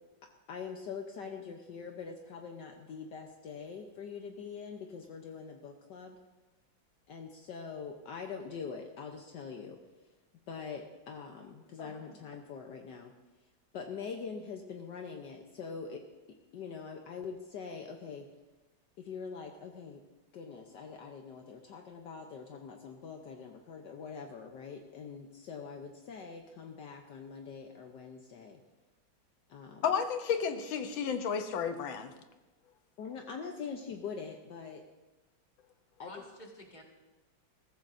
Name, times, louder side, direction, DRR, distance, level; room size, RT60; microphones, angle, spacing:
voice 1, 0.5-6.2 7.1-9.8 10.5-13.1 13.7-16.0 16.5-18.3 19.0-20.0 20.3-28.6 29.5-29.8 33.0-34.8 36.0-36.2, left 5 dB, 65° left, 3 dB, 1.5 m, -43 dB
voice 2, 11.8-12.2 36.0-36.8, left 2 dB, 25° left, 0 dB, 2.0 m, -50 dB
voice 3, 29.8-32.1, left 7 dB, 85° left, 7 dB, 1.6 m, -32 dB
22.0 x 14.5 x 2.7 m, 1.1 s
omnidirectional pair, 2.1 m